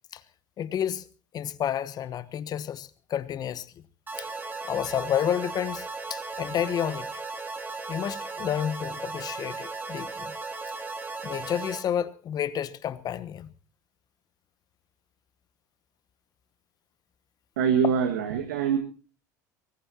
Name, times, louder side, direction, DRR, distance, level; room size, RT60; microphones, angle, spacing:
voice 1, 0.6-1.1 1.3-3.7 4.2-4.3 4.6-7.1 7.9-10.3 11.2-13.5, left 10 dB, 45° left, 1.2 m, -30 dB
sound 1, 4.1-11.8, right 3 dB, 20° right, 2.9 m, -36 dB
voice 2, 17.6-18.8, right 7 dB, 80° right, 1.9 m, -24 dB
23.5 x 19.5 x 2.9 m
hypercardioid pair, 75°, 10 cm